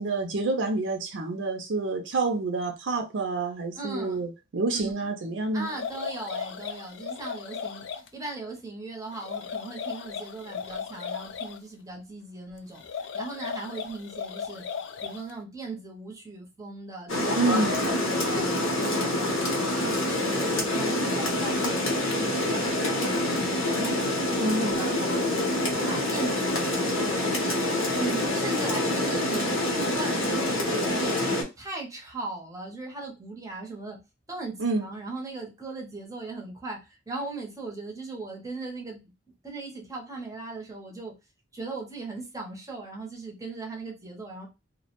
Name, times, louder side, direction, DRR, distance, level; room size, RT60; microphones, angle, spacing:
voice 1, 0.0-5.7 17.4-17.9 24.4-24.8 34.6-34.9, right 2 dB, 65° right, 0.5 m, -28 dB
voice 2, 3.8-4.3 4.7-4.9 5.5-14.7 15.0-19.3 19.7-27.6 28.0-31.2 31.6-34.0 34.3-39.1 39.4-41.1 41.5-44.5, right 3 dB, 15° right, 0.6 m, -38 dB
sound 1, 5.6-8.1 9.1-11.6 12.7-15.3, left 6 dB, 60° left, 0.3 m, -36 dB
Rain, 17.1-31.4, left 1 dB, 90° left, 1.0 m, -26 dB
2.2 x 2.1 x 2.8 m
head